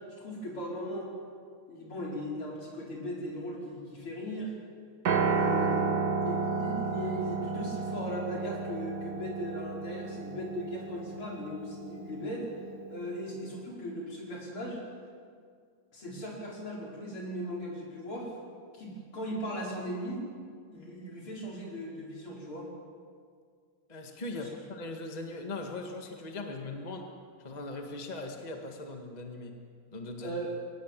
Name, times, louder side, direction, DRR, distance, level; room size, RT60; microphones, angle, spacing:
voice 1, 0.2-1.1 1.7-4.6 5.1-5.9 6.2-12.4 12.9-14.8 15.9-18.3 18.7-20.2 20.7-22.7 24.3-24.5 30.2-30.6, equal, 80° left, -3 dB, 5.9 m, -38 dB
Piano, 5.1-13.3, right 4 dB, 55° right, 1.5 m, -32 dB
voice 2, 23.9-27.1 27.4-29.5 29.9-30.4, left 2 dB, 20° left, 3 dB, 1.8 m, -40 dB
22.0 x 19.0 x 7.6 m, 2.1 s
omnidirectional pair, 2.3 m